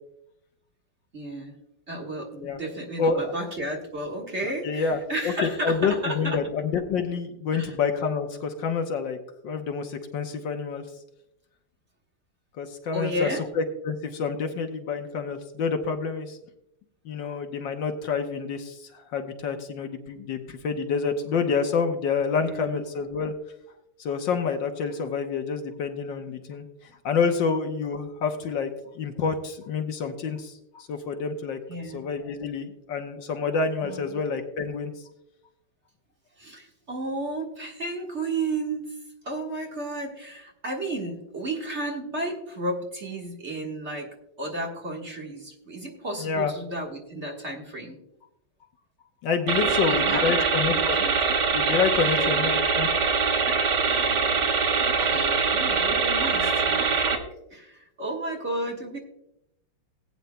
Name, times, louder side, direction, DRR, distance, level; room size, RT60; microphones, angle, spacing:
voice 1, 1.1-1.6 1.9-6.4 7.5-7.7 12.9-13.5 22.4-22.8 31.7-32.0 33.8-34.0 36.4-39.0 39.2-44.1 44.4-48.0 49.6-51.2 51.9-52.6 53.8-57.2 57.5-59.0, right 1 dB, 35° right, 0 dB, 1.7 m, -33 dB
voice 2, 3.0-3.3 4.4-5.0 5.2-9.2 9.4-10.8 12.6-13.3 13.5-16.4 17.0-23.3 24.0-26.7 27.0-31.6 31.9-34.9 46.2-46.5 49.2-51.0 51.5-52.9, left 5 dB, 70° left, 6 dB, 1.6 m, -28 dB
sound 1, 49.5-57.2, right 5 dB, 60° right, 1.7 m, -23 dB
19.0 x 9.2 x 2.2 m, 0.82 s
omnidirectional pair, 2.2 m